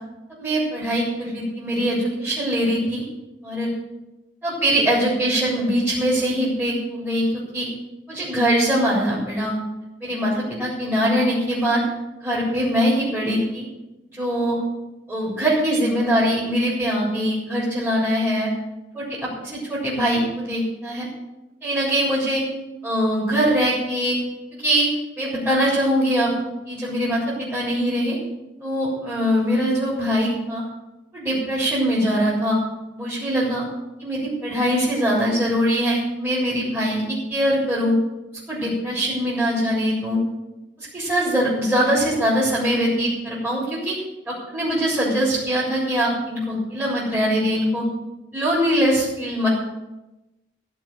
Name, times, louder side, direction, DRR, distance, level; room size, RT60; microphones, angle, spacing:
voice 1, 0.4-3.0 3.4-3.7 4.4-7.7 8.1-9.5 10.0-11.8 12.2-13.6 14.1-14.6 15.1-18.5 18.9-21.1 21.6-22.4 22.8-24.2 24.6-24.9 25.2-26.3 26.7-28.2 28.6-30.6 31.1-32.6 33.0-33.6 34.0-38.0 38.5-40.2 40.8-44.0 44.3-47.9 48.3-49.5, equal, 10° right, -10 dB, 4.2 m, -22 dB
15.5 x 5.4 x 9.1 m, 1.0 s
head